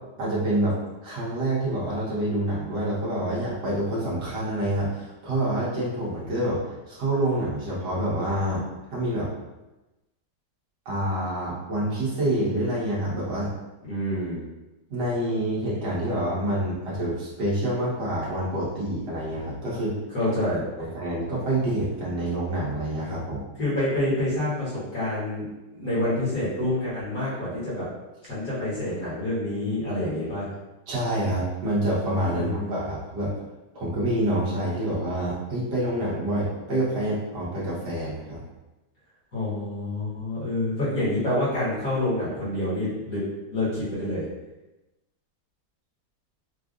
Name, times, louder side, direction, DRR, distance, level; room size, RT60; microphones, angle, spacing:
voice 1, 0.2-0.8 1.0-8.6 8.9-9.3 10.9-13.5 14.9-20.0 20.9-23.4 30.9-33.3 33.7-38.4, right 1 dB, 60° right, -7 dB, 1.7 m, -27 dB
voice 2, 13.9-14.4 20.1-20.9 23.6-25.4 25.7-27.9 28.2-30.5 32.3-32.8 39.3-44.3, left 1 dB, 45° left, -9 dB, 1.8 m, -27 dB
4.9 x 2.4 x 2.5 m, 1.0 s
omnidirectional pair, 2.2 m